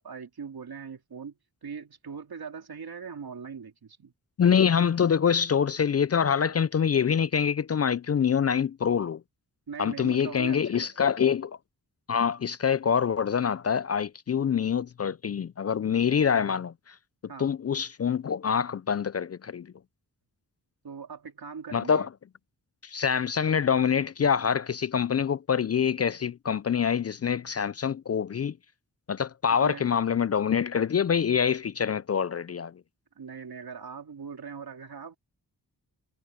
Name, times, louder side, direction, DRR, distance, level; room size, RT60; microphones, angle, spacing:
voice 1, 0.0-4.1 9.7-11.2 17.3-17.5 20.8-22.1 29.6-30.0 33.1-35.2, right 6 dB, 70° right, 2.9 m, -41 dB
voice 2, 4.4-9.2 9.8-11.6 12.1-17.0 17.4-19.7 21.7-22.1 22.8-28.6 29.1-32.8, left 7 dB, 40° left, 0.4 m, -25 dB
wide cardioid pair, 85°, 39 cm